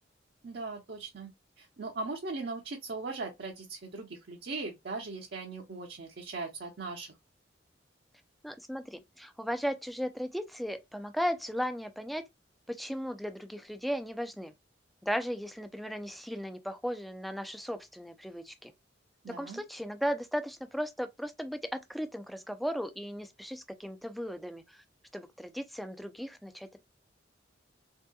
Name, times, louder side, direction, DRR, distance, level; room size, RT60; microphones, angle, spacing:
voice 1, 0.4-1.3 1.6-7.1 19.2-19.6, right 3 dB, 60° right, 0.6 m, -39 dB
voice 2, 8.4-12.2 12.7-14.5 15.0-18.7 19.3-24.8 25.1-26.8, equal, ahead, 0.3 m, -36 dB
3.4 x 2.7 x 2.2 m
head